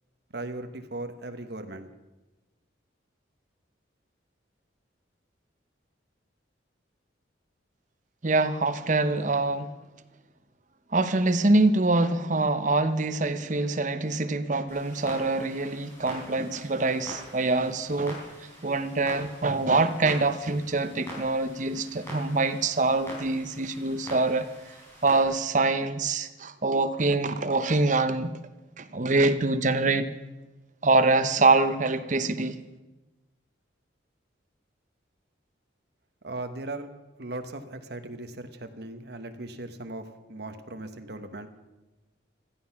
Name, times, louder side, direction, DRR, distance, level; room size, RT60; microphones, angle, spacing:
voice 1, 0.3-1.9 36.2-36.9 37.2-41.5, right 2 dB, 55° right, 1.3 m, -38 dB
voice 2, 8.2-9.7 10.9-18.2 18.6-24.5 25.0-28.4 28.8-30.1 30.8-32.6, right 3 dB, 40° right, 0.8 m, -25 dB
Clock, 14.7-25.2, equal, 15° left, 5.0 m, -44 dB
16.0 x 13.5 x 5.9 m
head